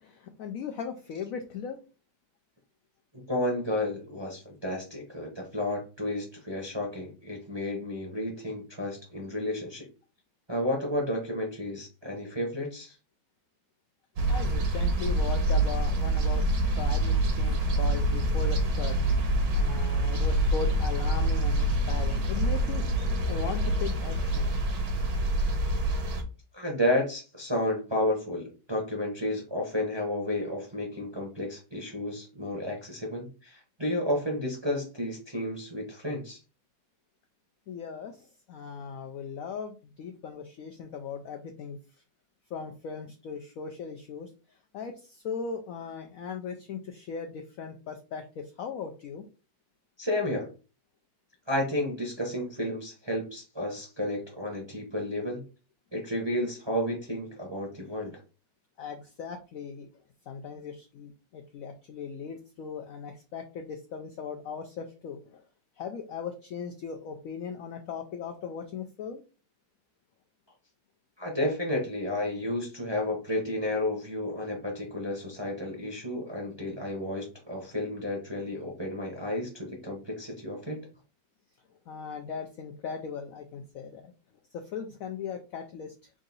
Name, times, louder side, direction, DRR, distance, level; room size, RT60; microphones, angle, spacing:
voice 1, 0.0-1.8 14.3-19.0 19.5-22.8 23.3-24.5 37.7-41.8 42.5-44.3 44.7-49.2 58.8-59.9 60.3-65.4 65.8-69.2 81.9-84.1 84.5-85.9, left 6 dB, 75° left, 5 dB, 0.7 m, -38 dB
voice 2, 3.1-9.9 10.5-12.9 26.5-36.4 50.0-50.5 51.5-55.5 55.9-58.1 71.2-80.8, left 1 dB, 25° right, -1 dB, 0.6 m, -32 dB
sound 1, 14.2-26.2, right 1 dB, 75° right, 1.6 m, -26 dB
3.7 x 2.5 x 3.9 m, 0.34 s
omnidirectional pair, 2.0 m